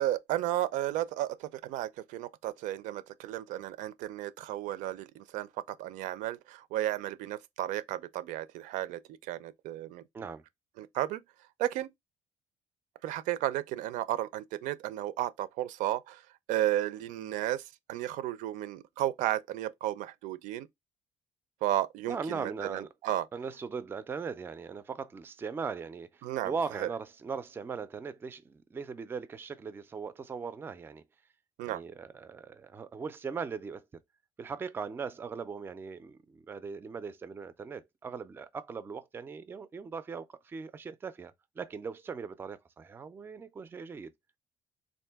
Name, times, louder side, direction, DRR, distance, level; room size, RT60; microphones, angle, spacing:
voice 1, 0.0-10.0 10.8-11.2 11.6-11.9 13.0-16.2 16.5-20.7 21.6-23.3 26.2-26.5 26.8-26.9 31.6-31.8, right 13 dB, 85° right, 0.4 m, -33 dB
voice 2, 22.1-22.9 23.3-31.0 31.7-33.9 34.4-44.1, right 5 dB, 15° right, 0.3 m, -39 dB
3.6 x 2.5 x 3.4 m
cardioid pair, 150°, 13 cm